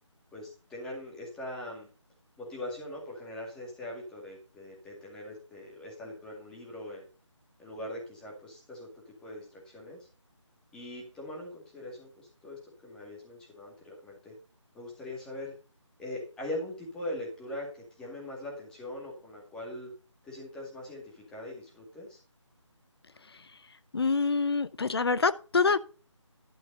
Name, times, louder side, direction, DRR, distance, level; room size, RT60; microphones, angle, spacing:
voice 1, 0.3-1.9 2.4-7.1 7.6-10.1 10.7-14.4 14.7-15.5 16.0-19.9 20.2-22.2, left 1 dB, 5° left, 2.1 m, -41 dB
voice 2, 23.9-25.8, left 4 dB, 50° left, 0.7 m, -26 dB
11.5 x 6.2 x 5.4 m
figure-of-eight pair, 160°, 16 cm